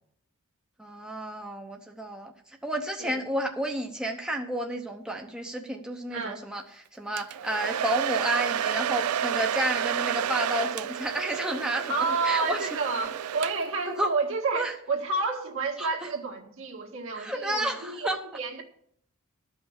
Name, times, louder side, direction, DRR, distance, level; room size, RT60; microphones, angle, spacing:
voice 1, 0.8-12.7 13.9-14.1 14.5-14.7 15.8-16.1 17.1-18.2, right 1 dB, 5° right, 0.9 m, -31 dB
voice 2, 6.1-6.4 11.9-18.1 18.3-18.6, right 3 dB, 65° right, 2.0 m, -30 dB
Domestic sounds home sounds, 7.2-13.9, right 9 dB, 80° right, 0.4 m, -30 dB
13.0 x 5.6 x 7.2 m
head